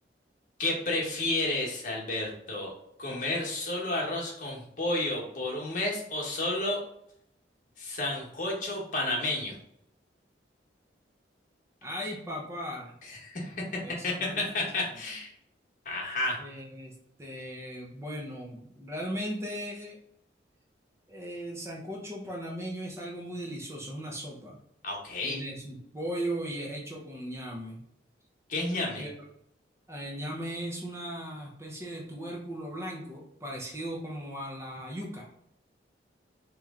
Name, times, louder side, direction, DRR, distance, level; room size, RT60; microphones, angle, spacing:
voice 1, 0.6-2.7 3.0-6.8 7.8-9.6 13.1-13.6 14.0-15.3 15.8-16.4 24.8-25.4 28.5-29.0, left 2 dB, 45° left, -2 dB, 1.1 m, -31 dB
voice 2, 11.8-12.9 13.8-14.4 16.4-16.9 17.2-20.0 21.1-24.6 25.2-27.8 28.9-29.3 29.9-35.3, equal, 15° right, -2 dB, 0.7 m, -37 dB
3.1 x 3.0 x 3.6 m, 0.74 s
head